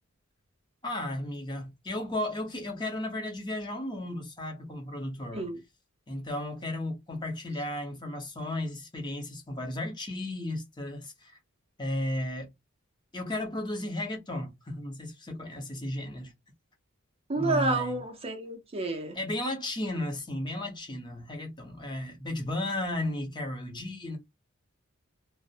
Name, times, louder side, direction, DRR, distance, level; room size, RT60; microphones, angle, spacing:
voice 1, 0.8-5.5 6.1-11.4 11.8-12.5 13.1-16.3 17.4-18.0 19.1-24.2, left 1 dB, 20° left, 0.7 m, -34 dB
voice 2, 17.3-19.2, right 2 dB, 30° right, 0.5 m, -30 dB
2.4 x 2.0 x 2.7 m
head